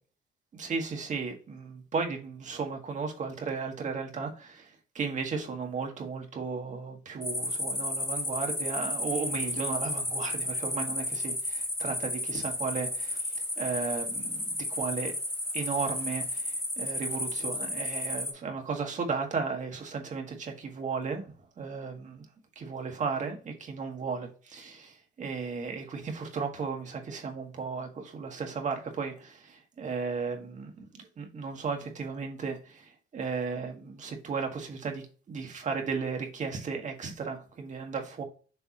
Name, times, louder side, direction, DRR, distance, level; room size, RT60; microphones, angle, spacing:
voice 1, 0.5-4.7 5.0-13.2 13.6-15.1 15.5-21.3 21.6-22.3 22.6-30.9 31.2-38.2, right 5 dB, 45° right, 1.8 m, -35 dB
sound 1, 7.2-18.3, left 1 dB, 15° left, 2.1 m, -33 dB
7.0 x 3.5 x 4.1 m
cardioid pair, 105°, 17 cm